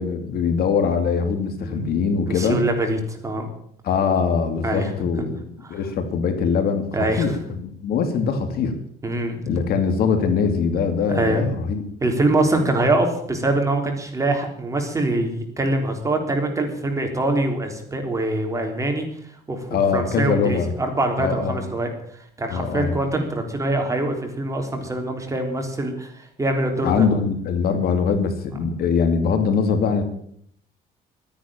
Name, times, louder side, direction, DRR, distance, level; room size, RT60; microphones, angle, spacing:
voice 1, 0.0-2.6 3.8-8.7 9.5-11.8 19.7-20.7 21.2-21.6 22.5-22.9 26.8-30.0, left 6 dB, 65° left, 7 dB, 2.5 m, -22 dB
voice 2, 2.3-3.5 4.6-4.9 5.6-5.8 6.9-7.4 9.0-9.5 11.1-11.5 12.0-19.1 19.5-27.1, right 2 dB, 20° right, 4 dB, 3.6 m, -24 dB
12.5 x 10.5 x 8.9 m, 0.66 s
cardioid pair, 110°, 17 cm